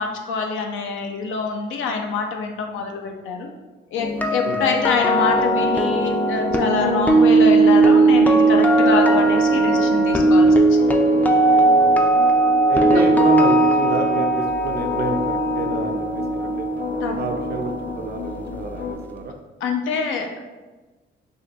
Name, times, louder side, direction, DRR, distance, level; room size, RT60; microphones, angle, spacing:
voice 1, 0.0-3.5 3.9-10.8 17.0-17.2 19.6-20.4, left 4 dB, 80° left, 3 dB, 0.6 m, -25 dB
sound 1, 4.0-18.1 18.3-18.6, right 2 dB, 10° left, 0.4 m, -18 dB
sound 2, 4.6-18.9, left 5 dB, 50° left, 1.1 m, -33 dB
voice 2, 11.7-12.1 12.7-16.7 17.1-19.4, right 4 dB, 55° right, 4 dB, 0.5 m, -29 dB
6.2 x 2.1 x 2.8 m, 1.2 s
cardioid pair, 90°, 20 cm